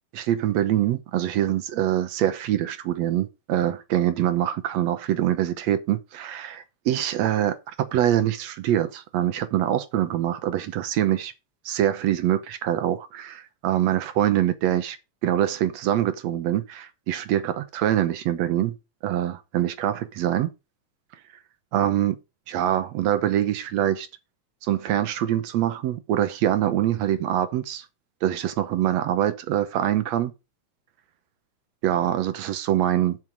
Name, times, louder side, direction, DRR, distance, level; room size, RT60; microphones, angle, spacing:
voice 1, 0.1-11.3 11.7-15.0 15.2-18.8 19.0-20.5 21.7-22.2 22.5-24.1 24.7-27.9 28.2-30.3 31.8-33.2, right 12 dB, 70° right, 1.8 m, -24 dB
7.9 x 5.4 x 6.0 m
omnidirectional pair, 3.6 m